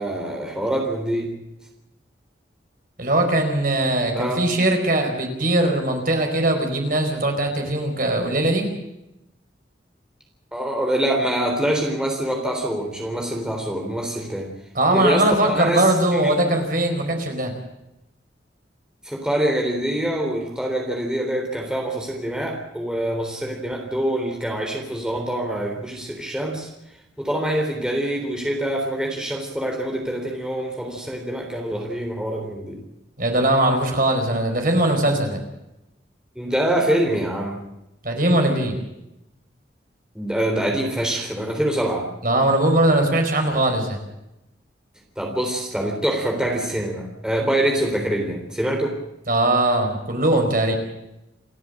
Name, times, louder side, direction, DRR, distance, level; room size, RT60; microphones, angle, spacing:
voice 1, 0.0-1.3 4.1-4.6 10.5-14.5 14.9-16.4 19.0-26.7 27.2-32.8 36.4-37.6 40.2-42.1 45.2-48.9, right 1 dB, 5° right, 1 dB, 3.7 m, -25 dB
voice 2, 3.0-8.7 14.7-17.5 33.2-35.4 38.0-38.8 42.2-44.0 49.3-50.8, right 1 dB, 45° right, 3 dB, 4.7 m, -20 dB
28.5 x 11.0 x 8.8 m, 0.89 s
head